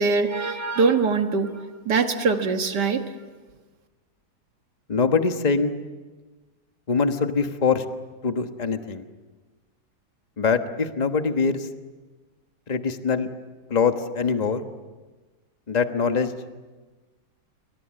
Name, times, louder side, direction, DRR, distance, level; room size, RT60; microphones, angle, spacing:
voice 1, 0.0-1.5 1.9-3.0, right 4 dB, 80° right, 6 dB, 2.1 m, -22 dB
voice 2, 4.9-5.8 6.9-7.8 8.2-9.0 10.4-11.7 12.7-13.3 13.7-14.6 15.7-16.3, left 5 dB, 25° left, 7 dB, 1.3 m, -23 dB
28.5 x 24.5 x 7.6 m, 1.3 s
omnidirectional pair, 1.8 m